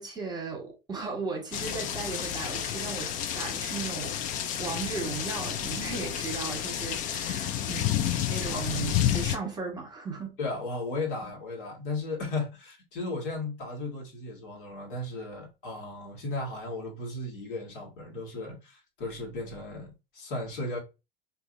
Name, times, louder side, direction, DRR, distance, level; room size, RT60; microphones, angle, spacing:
voice 1, 0.0-4.2 4.6-7.9 8.3-10.3, right 4 dB, 15° right, 1.3 m, -36 dB
sound 1, 1.5-9.4, left 10 dB, 30° left, 0.4 m, -30 dB
voice 2, 10.4-20.8, left 2 dB, 65° left, 1.6 m, -35 dB
4.7 x 2.7 x 2.5 m
figure-of-eight pair, 90°, 29 cm